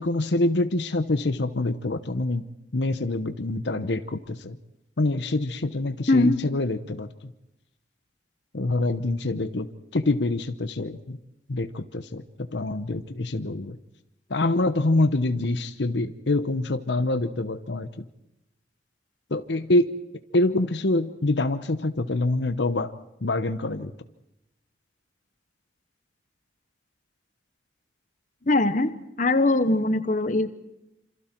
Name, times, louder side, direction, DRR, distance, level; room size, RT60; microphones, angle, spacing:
voice 1, 0.0-2.4 2.7-4.6 5.0-7.1 8.5-9.7 9.9-11.2 11.5-12.2 12.5-13.8 14.3-17.9 19.3-19.9 20.3-22.9 23.2-23.9, left 2 dB, 75° left, 11 dB, 0.9 m, -25 dB
voice 2, 6.1-6.4 28.5-28.9 29.2-30.5, left 2 dB, 45° left, 11 dB, 1.2 m, -21 dB
27.5 x 26.5 x 4.5 m, 0.90 s
head